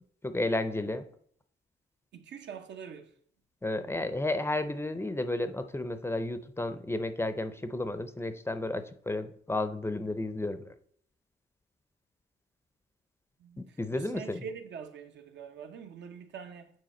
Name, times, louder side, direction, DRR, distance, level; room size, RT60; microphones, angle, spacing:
voice 1, 0.2-1.1 3.6-10.7 13.8-14.4, left 2 dB, 10° left, 0.5 m, -32 dB
voice 2, 2.1-3.1 13.4-16.7, right 7 dB, 65° right, 0.9 m, -44 dB
7.8 x 4.5 x 4.3 m
cardioid pair, 90°, 20 cm